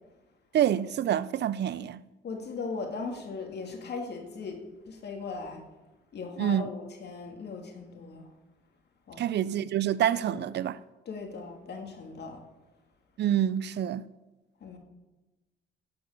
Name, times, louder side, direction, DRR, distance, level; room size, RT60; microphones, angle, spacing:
voice 1, 0.5-2.0 6.4-6.7 9.2-10.8 13.2-14.1, right 10 dB, 60° right, 0.5 m, -27 dB
voice 2, 2.2-4.6 4.8-5.6 6.1-8.3 9.1-9.3 10.2-10.5 11.1-12.4 14.6-14.8, left 4 dB, 55° left, 2.4 m, -38 dB
17.5 x 6.1 x 6.6 m
cardioid pair, 90°, 20 cm